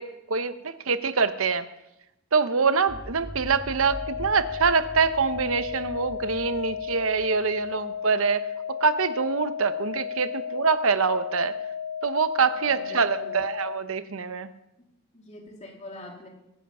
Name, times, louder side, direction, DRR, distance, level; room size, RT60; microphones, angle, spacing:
voice 1, 0.0-1.7 2.3-8.5 8.8-11.6 12.0-14.5, right 5 dB, 90° right, 11 dB, 0.9 m, -25 dB
sound 1, 2.9-7.7, equal, ahead, 0.9 m, -42 dB
sound 2, 3.8-13.8, left 7 dB, 55° left, 0.4 m, -34 dB
voice 2, 12.6-13.5 14.8-14.9 15.1-16.3, left 1 dB, 35° left, 0 dB, 2.8 m, -44 dB
22.5 x 7.9 x 5.5 m, 0.88 s
head